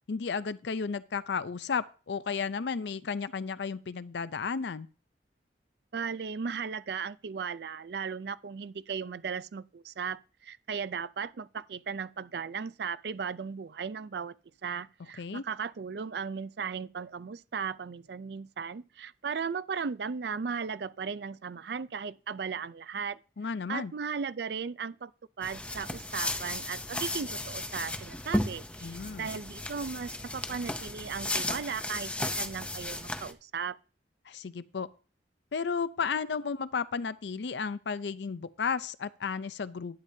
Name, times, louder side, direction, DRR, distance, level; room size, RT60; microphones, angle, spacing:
voice 1, 0.1-4.9 15.2-15.4 23.4-23.9 28.8-29.3 34.3-34.9 35.5-40.0, left 5 dB, 75° left, 0.5 m, -33 dB
voice 2, 5.9-14.4 14.6-23.2 23.7-25.1 25.4-33.8, right 6 dB, 60° right, 0.4 m, -36 dB
sound 1, 25.4-33.3, left 1 dB, 5° left, 0.6 m, -35 dB
11.5 x 9.9 x 2.8 m
head